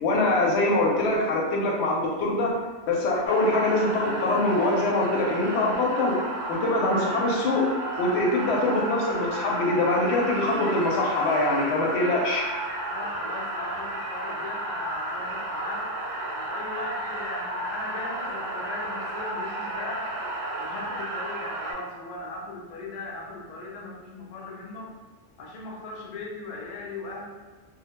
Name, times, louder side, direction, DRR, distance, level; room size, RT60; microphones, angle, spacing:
voice 1, 0.0-2.6 2.9-6.2 6.5-7.7 8.0-12.5, left 2 dB, 65° left, -2 dB, 0.8 m, -24 dB
sound 1, 3.3-21.7, right 1 dB, 60° right, 0.5 m, -32 dB
voice 2, 12.9-15.9 16.3-20.1 20.6-24.9 25.4-27.3, left 2 dB, 90° left, -2 dB, 0.3 m, -38 dB
2.1 x 2.1 x 2.8 m, 1.3 s
omnidirectional pair, 1.3 m